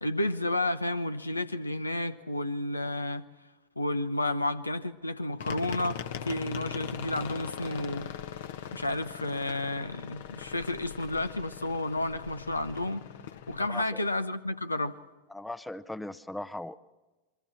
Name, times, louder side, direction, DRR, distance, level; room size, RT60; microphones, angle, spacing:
voice 1, 0.0-3.3 3.8-8.1 8.7-13.0 13.5-15.0, left 1 dB, 80° left, 0.9 m, -31 dB
sound 1, 5.4-13.7, left 9 dB, 55° left, 1.2 m, -40 dB
voice 2, 13.7-14.0 15.3-16.8, left 1 dB, 5° left, 0.7 m, -39 dB
28.5 x 22.5 x 4.4 m
figure-of-eight pair, 90°, 0 cm